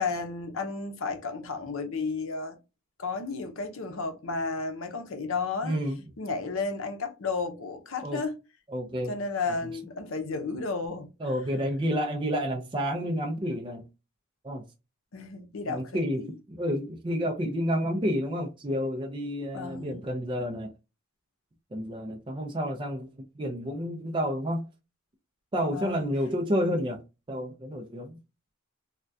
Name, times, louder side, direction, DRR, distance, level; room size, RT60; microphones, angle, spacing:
voice 1, 0.0-2.6 3.0-5.8 6.2-8.3 9.1-11.1 15.1-16.3 19.5-20.0 25.7-26.0, left 4 dB, 70° left, 0.6 m, -33 dB
voice 2, 5.6-6.0 8.0-8.2 8.7-9.1 9.5-9.7 11.2-13.9 14.4-14.6 15.7-16.2 16.5-20.7 21.7-23.1 23.4-24.7 25.5-27.0 27.3-28.2, equal, 25° right, 0.4 m, -30 dB
3.4 x 2.2 x 2.6 m
head